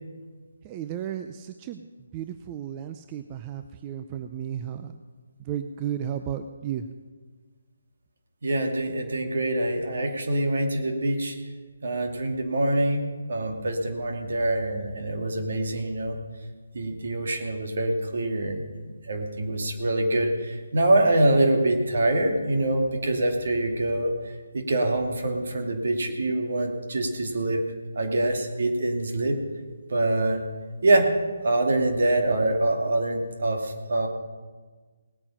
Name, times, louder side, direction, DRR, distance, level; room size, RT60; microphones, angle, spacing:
voice 1, 0.6-1.9 2.1-4.9 5.4-6.9, right 10 dB, 25° right, 8 dB, 0.5 m, -33 dB
voice 2, 8.4-11.4 11.8-13.0 13.3-16.1 16.7-18.7 19.1-24.1 24.5-27.6 27.9-29.4 29.9-30.4 30.8-31.1 31.4-34.1, right 1 dB, 60° right, 3 dB, 2.3 m, -25 dB
18.5 x 8.7 x 5.6 m, 1.4 s
figure-of-eight pair, 150°, 0 cm